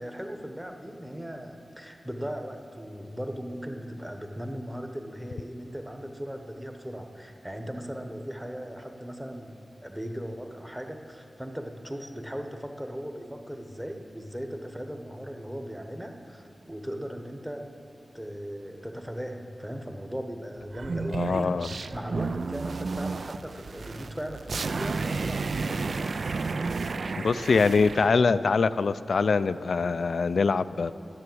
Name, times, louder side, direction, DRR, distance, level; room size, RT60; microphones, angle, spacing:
voice 1, 0.0-9.6 9.8-17.7 18.1-26.2, equal, 5° right, 5 dB, 1.0 m, -38 dB
sound 1, 20.7-28.1, right 4 dB, 60° right, 0.3 m, -32 dB
voice 2, 21.1-21.7 27.2-30.9, left 4 dB, 70° left, 13 dB, 0.3 m, -24 dB
11.0 x 9.7 x 7.8 m, 2.5 s
wide cardioid pair, 120°, 0 cm